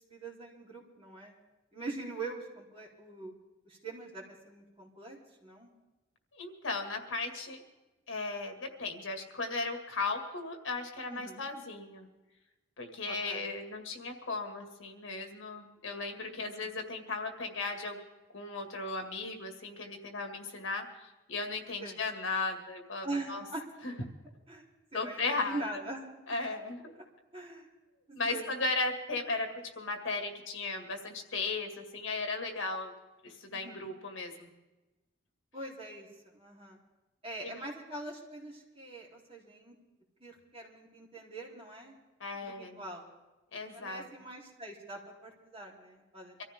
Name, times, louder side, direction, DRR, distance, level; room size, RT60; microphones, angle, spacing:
voice 1, 0.1-1.4 1.7-3.3 3.6-5.7 11.1-11.4 13.1-13.4 16.3-16.7 21.8-22.0 23.0-23.6 24.5-24.6 24.9-26.0 27.3-27.7 28.1-28.5 33.5-33.9 35.5-36.1 36.3-36.8 37.2-39.7 40.2-41.9 42.3-43.1 43.7-46.4, right 2 dB, 30° right, -4 dB, 3.6 m, -43 dB
voice 2, 6.3-7.6 8.1-12.1 12.8-18.0 18.3-23.4 23.8-24.0 24.9-25.6 26.3-26.9 28.1-29.5 29.8-32.9 33.2-34.5 37.4-37.6 42.2-42.8 43.5-44.1, left 3 dB, 85° left, 5 dB, 2.1 m, -36 dB
24.0 x 14.5 x 3.6 m, 1.1 s
head